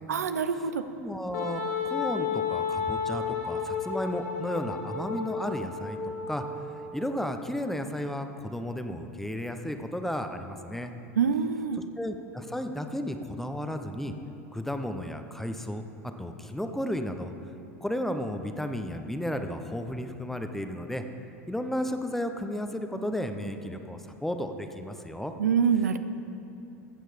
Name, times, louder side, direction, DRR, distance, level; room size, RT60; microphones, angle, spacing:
voice 1, 0.1-0.9 11.2-11.8 25.4-26.0, right 7 dB, 85° right, 11 dB, 0.6 m, -25 dB
voice 2, 1.0-1.6 1.9-10.9 12.0-14.1 14.5-15.8 16.2-17.3 17.8-21.0 21.5-25.3, left 1 dB, 5° left, 7 dB, 0.9 m, -33 dB
Wind instrument woodwind instrument, 1.3-7.0, left 6 dB, 75° left, 2.0 m, -32 dB
15.0 x 7.5 x 5.1 m, 2.8 s
hypercardioid pair, 90°, 8 cm